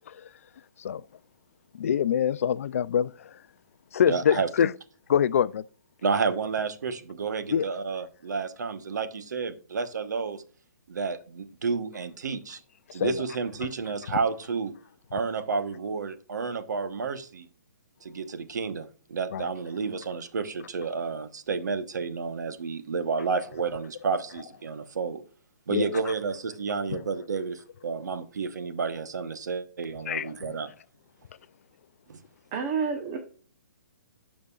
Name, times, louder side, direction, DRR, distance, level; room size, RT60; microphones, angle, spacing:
voice 1, 1.7-3.3 3.9-4.7 5.1-5.6 7.5-7.6 13.0-13.1 19.3-19.5 25.7-25.9 30.1-30.3, left 8 dB, 50° left, 0.3 m, -24 dB
voice 2, 4.1-4.5 6.0-10.4 10.9-12.6 12.9-14.7 15.1-17.5 18.0-25.2 25.7-30.7 32.1-32.2, right 5 dB, 75° right, 1.1 m, -31 dB
voice 3, 32.5-33.2, right 5 dB, 25° right, 0.9 m, -28 dB
12.5 x 5.1 x 2.4 m
hypercardioid pair, 165°, 9 cm